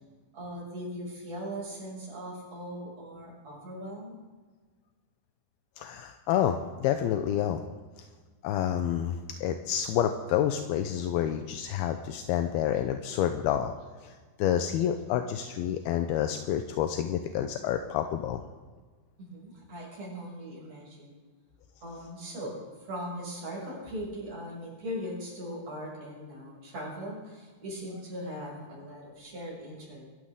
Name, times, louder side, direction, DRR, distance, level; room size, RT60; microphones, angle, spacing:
voice 1, 0.3-4.2 19.2-21.1 21.8-22.5 22.8-30.1, equal, 40° right, -4 dB, 7.5 m, -39 dB
voice 2, 5.8-7.6 8.4-13.7 14.0-18.4, left 10 dB, 80° left, 6 dB, 2.5 m, -29 dB
24.0 x 14.0 x 3.7 m, 1.4 s
omnidirectional pair, 4.8 m